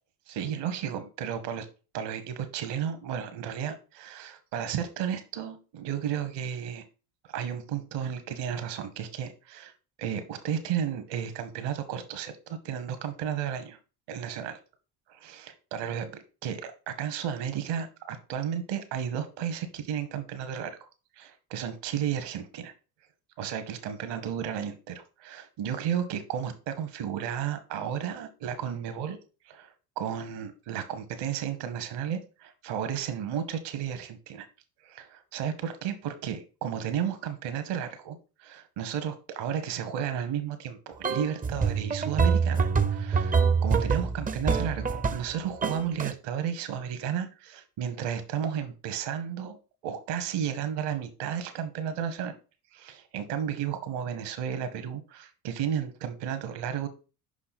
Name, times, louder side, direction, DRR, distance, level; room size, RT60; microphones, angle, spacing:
voice 1, 0.3-1.7 1.9-6.8 7.3-9.7 10.0-13.8 14.1-14.5 15.7-20.9 21.2-22.7 23.4-29.2 29.5-34.5 34.8-49.6 49.8-52.3 52.7-56.9, right 9 dB, 60° right, 9 dB, 1.3 m, -33 dB
sound 1, 41.0-45.3 45.6-46.1, right 5 dB, 20° right, 0.5 m, -26 dB
5.6 x 4.9 x 4.1 m, 0.33 s
hypercardioid pair, 55°, 47 cm